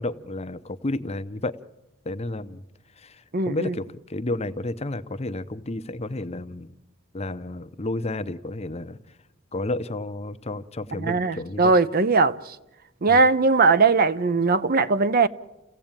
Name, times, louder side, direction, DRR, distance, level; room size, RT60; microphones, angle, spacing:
voice 1, 0.0-1.6 2.0-2.6 3.0-6.7 7.1-9.0 9.5-11.7 13.1-13.2, left 2 dB, 30° left, 0.7 m, -31 dB
voice 2, 3.3-3.7 11.0-12.4 13.0-15.3, right 4 dB, 45° right, 0.7 m, -19 dB
29.0 x 16.0 x 8.9 m
head